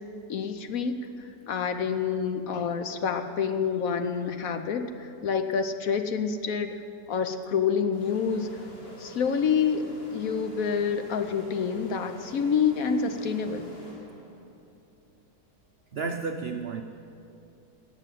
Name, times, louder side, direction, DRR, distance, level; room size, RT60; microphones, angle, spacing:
voice 1, 0.3-6.7 7.1-8.5 9.0-9.9 10.1-13.7, left 6 dB, 65° left, 8 dB, 1.0 m, -27 dB
sound 1, 7.9-14.6, equal, 35° left, 3.1 m, -46 dB
voice 2, 15.9-16.8, right 4 dB, 85° right, 5 dB, 0.5 m, -31 dB
17.5 x 6.6 x 9.1 m, 2.7 s
omnidirectional pair, 1.9 m